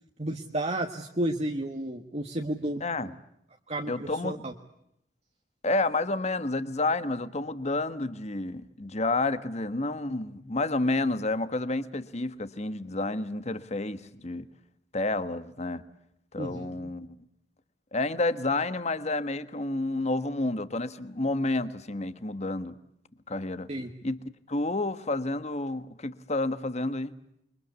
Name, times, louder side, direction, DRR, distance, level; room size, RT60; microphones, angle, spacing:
voice 1, 0.2-2.9 3.7-4.5 16.4-16.9 23.7-23.9, right 1 dB, 35° right, 3 dB, 1.5 m, -32 dB
voice 2, 2.8-3.1 3.9-4.4 5.6-14.5 14.9-15.8 16.3-17.1 17.9-22.8 23.3-23.7 24.0-24.2 24.5-27.1, left 2 dB, 40° left, 12 dB, 1.5 m, -30 dB
29.0 x 24.0 x 8.3 m, 0.78 s
head